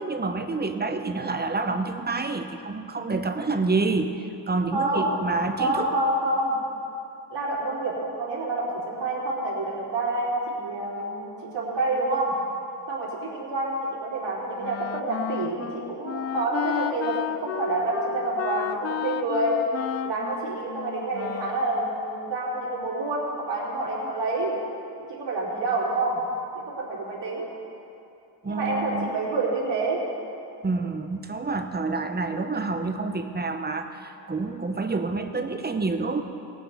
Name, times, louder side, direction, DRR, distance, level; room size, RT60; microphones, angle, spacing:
voice 1, 0.0-5.9 28.4-29.1 30.6-36.2, right 3 dB, 20° right, 6 dB, 0.8 m, -28 dB
voice 2, 4.7-6.6 7.3-12.3 12.9-19.6 20.0-24.6 25.1-26.2 26.6-27.5 28.5-30.0, right 2 dB, 70° right, -6 dB, 3.5 m, -28 dB
Wind instrument woodwind instrument, 14.6-21.7, left 9 dB, 40° left, 0.4 m, -32 dB
18.5 x 9.4 x 4.1 m, 2.8 s
cardioid pair, 105°, 43 cm